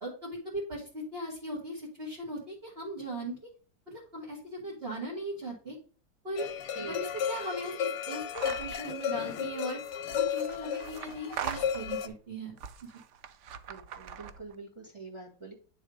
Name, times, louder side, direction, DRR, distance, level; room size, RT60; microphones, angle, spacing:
voice 1, 0.0-3.5 3.9-5.8 6.2-6.5 6.9-9.8 10.1-13.0, right 1 dB, 35° right, -6 dB, 2.1 m, -39 dB
sound 1, 6.4-12.1, left 8 dB, 75° left, 1.2 m, -34 dB
sound 2, 8.3-8.8 9.9-12.1 12.6-14.6, right 8 dB, 90° right, 0.6 m, -41 dB
voice 2, 13.7-15.5, right 4 dB, 15° right, -1 dB, 1.9 m, -45 dB
9.3 x 3.4 x 5.0 m, 0.40 s
omnidirectional pair, 1.9 m